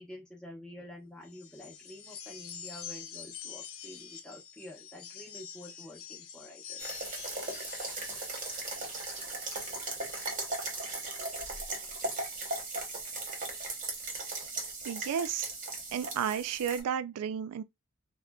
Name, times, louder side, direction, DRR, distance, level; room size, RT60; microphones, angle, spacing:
voice 1, 0.0-7.0, left 1 dB, 5° left, 0.7 m, -48 dB
sound 1, 1.2-10.7, left 8 dB, 60° left, 0.5 m, -47 dB
sound 2, 6.8-16.8, right 2 dB, 35° right, 0.8 m, -37 dB
voice 2, 14.8-15.5 15.9-17.6, right 8 dB, 85° right, 0.3 m, -33 dB
3.6 x 2.1 x 2.2 m
head